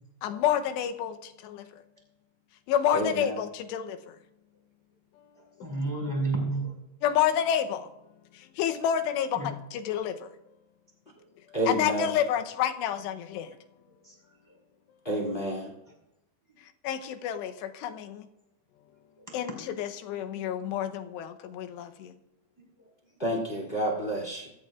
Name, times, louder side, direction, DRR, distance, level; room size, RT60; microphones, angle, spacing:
voice 1, 0.2-1.1 1.4-1.6 2.7-4.0 7.0-7.9 8.6-10.2 11.7-13.5 16.8-18.2 19.3-22.1, left 9 dB, 85° left, 7 dB, 3.0 m, -29 dB
voice 2, 2.9-3.2 11.5-12.1 15.0-15.7 23.2-24.5, right 1 dB, 15° left, 1 dB, 2.0 m, -29 dB
voice 3, 5.3-6.7 9.3-9.6 11.1-11.2 14.0-14.1 19.2-19.3 22.8-22.9, right 2 dB, 5° right, -1 dB, 4.6 m, -31 dB
24.0 x 14.0 x 2.4 m, 0.87 s
omnidirectional pair, 4.9 m